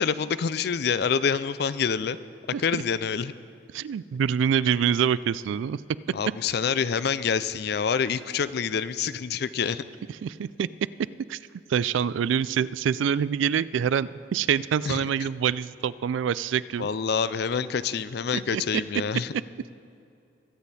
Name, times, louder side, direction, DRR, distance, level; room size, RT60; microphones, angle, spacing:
voice 1, 0.0-2.2 2.6-3.3 6.1-9.8 14.9-15.0 16.8-19.3, left 6 dB, 55° left, 15 dB, 0.4 m, -27 dB
voice 2, 3.7-5.8 6.1-6.2 10.2-10.7 11.3-11.4 11.7-16.9 18.5-18.6, right 8 dB, 80° right, 18 dB, 0.3 m, -26 dB
22.0 x 8.1 x 4.2 m, 2.6 s
head